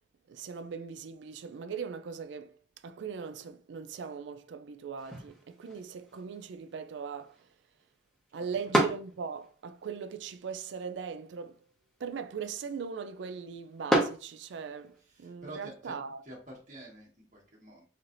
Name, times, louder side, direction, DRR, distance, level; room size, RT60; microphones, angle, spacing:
voice 1, 0.3-7.5 8.3-11.6 12.0-16.2, right 6 dB, 75° right, 0.4 m, -40 dB
sound 1, 5.0-15.0, right 1 dB, 5° left, 0.9 m, -36 dB
voice 2, 15.0-16.0 16.2-17.8, right 1 dB, 45° right, 1.4 m, -48 dB
4.0 x 3.2 x 2.5 m
head